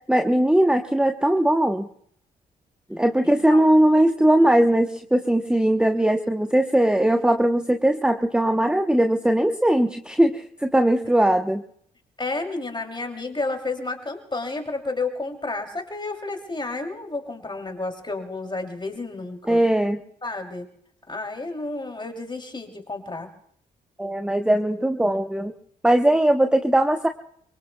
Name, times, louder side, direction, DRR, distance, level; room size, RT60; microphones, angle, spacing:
voice 1, 0.1-1.9 2.9-11.6 19.5-20.0 24.0-25.5 25.8-27.1, right 1 dB, 5° right, 6 dB, 1.0 m, -20 dB
voice 2, 3.2-3.8 12.2-19.6 20.2-20.6 21.1-23.3, left 3 dB, 20° left, 4 dB, 3.1 m, -31 dB
24.5 x 24.0 x 2.3 m, 0.64 s
hypercardioid pair, 40°, 21 cm